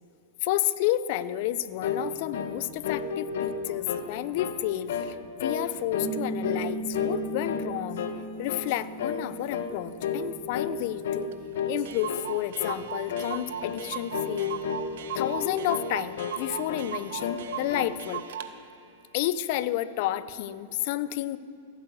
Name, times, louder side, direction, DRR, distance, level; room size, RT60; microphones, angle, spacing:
voice 1, 0.4-8.0 8.4-11.3 11.7-14.6 15.1-18.2 19.1-21.4, left 13 dB, 55° left, 16 dB, 0.7 m, -31 dB
sound 1, 1.8-2.1 2.3-2.6 2.8-4.1 4.4-4.6 4.9-5.1 5.4-5.6 5.9-6.7 6.9-7.7 8.0-8.2 8.5-8.7 9.0-9.2 9.5-9.7 10.0-10.3 10.5-10.8 11.0-11.3 11.6-11.8 12.1-12.3 12.6-12.8 13.1-13.3 13.6-13.8 14.1-14.9 15.2-15.9 16.2-16.9 17.2-17.9, left 7 dB, 75° left, 1.4 m, -31 dB
Piano, 6.0-11.1, right 3 dB, 35° right, 0.6 m, -38 dB
Clock, 11.3-11.4 11.6-11.7 11.9-18.5, right 9 dB, 70° right, 1.1 m, -38 dB
16.0 x 9.1 x 8.0 m, 2.6 s
hypercardioid pair, 125°, 0 cm